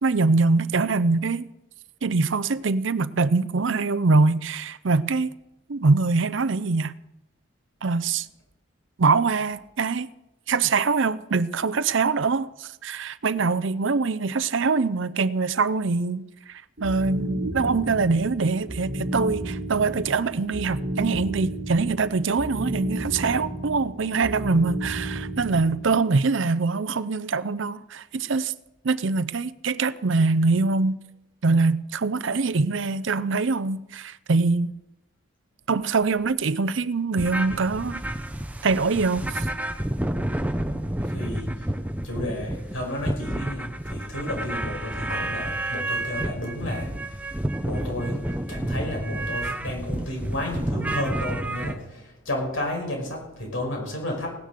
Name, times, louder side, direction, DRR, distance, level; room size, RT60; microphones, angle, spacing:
voice 1, 0.0-1.5 2.0-5.3 5.7-6.9 7.8-8.3 9.0-10.1 10.5-28.5 28.8-31.0 31.4-34.7 35.7-38.0 38.6-39.5, right 4 dB, 65° right, 0.6 m, -23 dB
sound 1, 16.8-26.0, right 1 dB, 45° right, 1.5 m, -32 dB
sound 2, 37.2-51.7, right 1 dB, 5° right, 0.8 m, -30 dB
voice 2, 41.0-41.7 42.0-47.3 47.6-54.4, left 1 dB, 75° left, 5.7 m, -32 dB
17.5 x 10.5 x 6.6 m
head